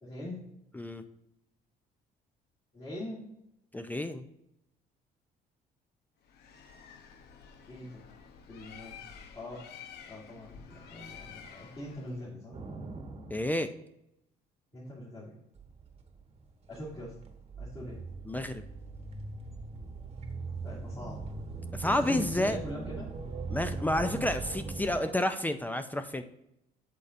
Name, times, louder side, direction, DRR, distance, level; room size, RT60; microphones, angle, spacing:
voice 1, 0.0-0.5 2.7-3.2 7.7-8.0 8.5-8.9 9.4-9.7 10.0-12.6 14.7-15.4 16.7-17.1 17.6-18.0 20.6-21.2 21.8-23.1, left 1 dB, 30° left, -9 dB, 2.4 m, -42 dB
voice 2, 3.7-4.2 13.3-13.7 18.3-18.6 21.7-22.6 23.5-26.2, left 1 dB, 10° left, 9 dB, 0.4 m, -30 dB
Bird, 6.2-12.3, left 7 dB, 75° left, 0.8 m, -50 dB
sound 1, 12.5-13.5 15.6-25.0, right 3 dB, 35° right, 1.1 m, -40 dB
8.3 x 6.8 x 2.6 m, 0.80 s
cardioid pair, 110°, 17 cm